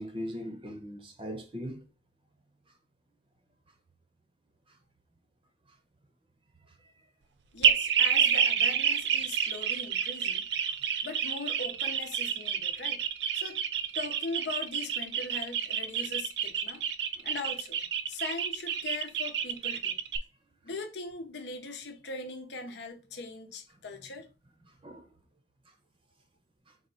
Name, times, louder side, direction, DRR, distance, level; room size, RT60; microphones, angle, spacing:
voice 1, 0.0-1.8 17.2-17.3 24.8-25.1, equal, 30° right, 0.7 m, -39 dB
voice 2, 7.5-10.5 11.0-13.0 13.3-13.6 13.9-16.8 17.2-17.8 18.1-20.0 20.6-24.3, left 3 dB, 75° left, 0.7 m, -40 dB
sound 1, 7.6-20.2, right 8 dB, 75° right, 0.5 m, -29 dB
4.0 x 2.4 x 4.6 m
head